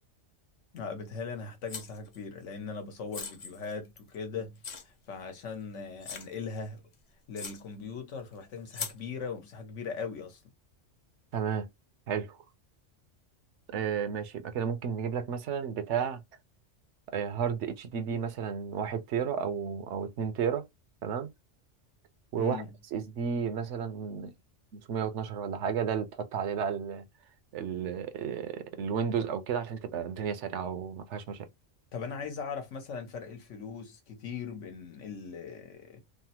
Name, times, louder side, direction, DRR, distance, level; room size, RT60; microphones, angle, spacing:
voice 1, 0.7-6.8 7.3-10.4 22.4-22.7 31.9-36.0, left 5 dB, 80° left, 1.2 m, -39 dB
sound 1, 1.7-2.2 3.1-4.2 4.6-4.8 5.5-5.6 6.0-6.3 6.9-7.0 7.4-7.6 8.7-9.0, left 5 dB, 45° left, 0.6 m, -39 dB
voice 2, 11.3-11.7 12.1-12.4 13.7-16.2 17.1-20.7 21.0-21.3 22.3-22.6 22.9-24.3 24.7-27.0 27.5-31.5, right 7 dB, 70° right, 0.9 m, -32 dB
3.3 x 2.1 x 2.8 m
omnidirectional pair, 1.3 m